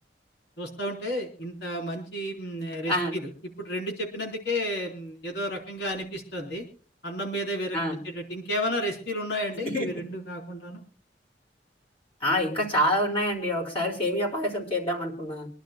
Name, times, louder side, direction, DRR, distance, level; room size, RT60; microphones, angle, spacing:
voice 1, 0.6-3.3 3.6-6.6 7.0-7.8 8.0-10.8, equal, 70° left, 1 dB, 4.3 m, -32 dB
voice 2, 12.2-15.5, equal, 35° left, -2 dB, 4.0 m, -26 dB
26.5 x 11.5 x 2.3 m, 0.41 s
head